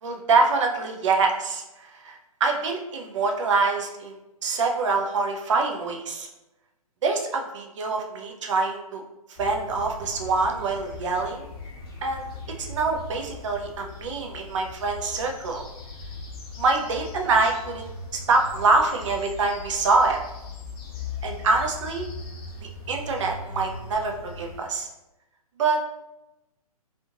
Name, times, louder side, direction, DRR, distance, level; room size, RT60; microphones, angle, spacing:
voice 1, 0.0-4.1 4.4-6.3 7.0-9.0 9.3-11.5 12.0-12.2 12.7-15.6 16.6-20.2 21.2-22.1 22.9-24.9 25.6-25.8, right 3 dB, 50° right, 2 dB, 0.6 m, -25 dB
sound 1, 9.4-24.6, left 3 dB, 40° left, 0.8 m, -39 dB
3.4 x 2.5 x 2.7 m, 0.94 s
figure-of-eight pair, 130°, 19 cm